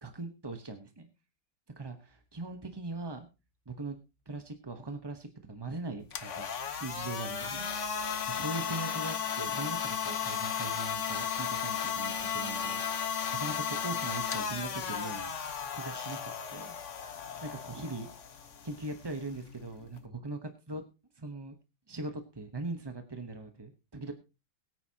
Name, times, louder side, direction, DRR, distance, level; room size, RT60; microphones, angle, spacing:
voice 1, 0.0-1.1 1.8-3.3 3.7-4.0 4.3-6.5 6.8-7.7 8.3-15.3 15.7-16.2 16.5-16.8 17.4-18.4 18.6-20.8 21.2-21.6 21.9-24.1, right 2 dB, 20° right, 7 dB, 0.6 m, -40 dB
sound 1, 6.0-20.1, left 7 dB, 45° left, 1.1 m, -35 dB
22.0 x 9.2 x 2.9 m, 0.29 s
omnidirectional pair, 2.2 m